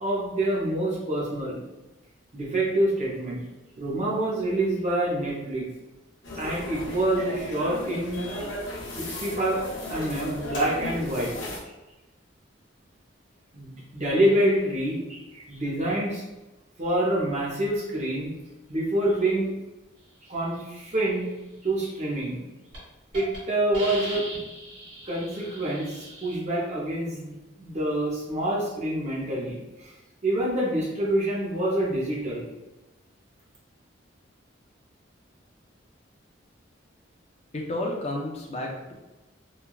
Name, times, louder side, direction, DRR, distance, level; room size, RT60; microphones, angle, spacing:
voice 1, 0.0-1.6 2.3-3.4 3.8-5.7 6.4-8.2 8.9-9.6 9.9-11.3 13.5-16.2 16.8-18.3 18.7-19.5 20.3-21.3 21.6-22.4 23.1-24.3 25.1-29.9 30.2-32.5, right 1 dB, 35° right, -5 dB, 0.7 m, -26 dB
sound 1, 6.2-11.6, left 1 dB, 75° left, 0.6 m, -36 dB
Hiss, 22.1-22.4 22.7-22.8 23.1-23.4 23.7-26.3, right 1 dB, 80° right, 1.4 m, -39 dB
voice 2, 37.5-38.9, left 1 dB, 30° left, 0 dB, 0.4 m, -31 dB
3.2 x 2.3 x 2.3 m, 1.0 s
head